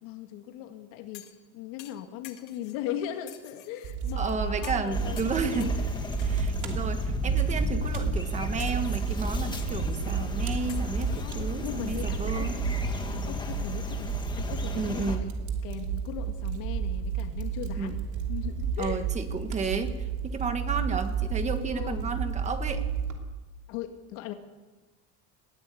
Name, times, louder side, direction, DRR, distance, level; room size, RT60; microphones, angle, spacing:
voice 1, 0.0-5.9 10.6-12.8 13.1-15.3 15.6-18.0 18.3-19.0 21.7-22.1 23.7-24.3, left 11 dB, 85° left, 6 dB, 2.1 m, -39 dB
sound 1, 1.1-1.4 1.8-2.8 3.3-4.2 4.6-4.9 5.2-5.8 6.2-6.7 7.4-7.5 7.9-8.3 8.6-9.1 9.6-10.1 10.7-12.0 12.4-12.5, left 14 dB, 60° left, 1.8 m, -50 dB
Fire, 3.8-23.1, right 6 dB, 50° right, 2.9 m, -31 dB
voice 2, 4.2-5.7 6.2-12.5 14.7-15.3 17.8-18.0 18.8-20.0 20.2-22.9, right 4 dB, 20° right, 8 dB, 1.4 m, -32 dB
sound 2, 4.9-15.2, left 4 dB, 10° left, 1.6 m, -34 dB
20.5 x 15.5 x 8.5 m, 1.2 s
cardioid pair, 175°, 37 cm